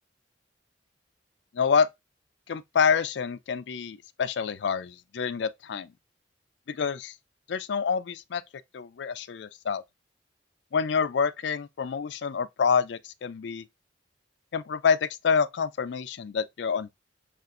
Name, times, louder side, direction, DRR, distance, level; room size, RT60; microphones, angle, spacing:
voice 1, 1.5-1.9 2.5-5.9 6.7-7.1 7.5-8.4 8.7-9.8 10.7-13.6 14.5-16.9, left 6 dB, 70° left, 0.4 m, -27 dB
6.5 x 2.5 x 2.4 m
head